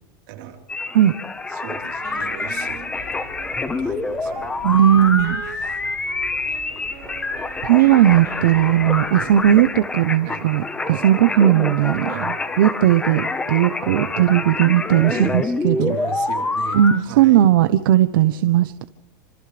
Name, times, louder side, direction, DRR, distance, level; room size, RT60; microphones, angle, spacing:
voice 1, 0.3-0.6 1.5-3.0 3.6-5.1 5.5-5.8 10.2-10.5 12.1-12.3 15.1-15.4 15.7-17.4, right 11 dB, 55° right, 2 dB, 4.2 m, -37 dB
sound 1, 0.7-17.0, left 3 dB, 10° left, 1.2 m, -27 dB
sound 2, 1.7-9.7, left 4 dB, 80° left, 5.8 m, -44 dB
Wind instrument woodwind instrument, 2.0-9.9, right 8 dB, 30° right, 3.4 m, -43 dB
voice 2, 4.6-5.4 7.6-15.9 16.7-18.8, right 12 dB, 80° right, 10 dB, 1.0 m, -17 dB
28.5 x 26.5 x 3.4 m, 0.80 s
supercardioid pair, 165°, 11 cm